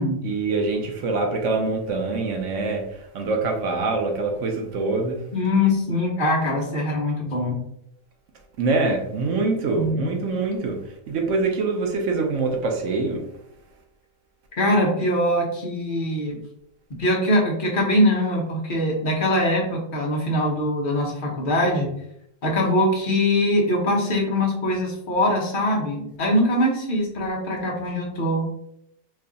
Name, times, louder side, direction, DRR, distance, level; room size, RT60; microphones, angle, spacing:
voice 1, 0.2-5.2 8.6-13.2, right 3 dB, 65° right, 2 dB, 0.8 m, -24 dB
voice 2, 5.3-7.6 9.7-10.1 14.6-16.4 17.0-21.9 22.4-28.5, left 1 dB, 40° left, -1 dB, 0.8 m, -22 dB
3.1 x 2.3 x 3.8 m, 0.76 s
omnidirectional pair, 1.8 m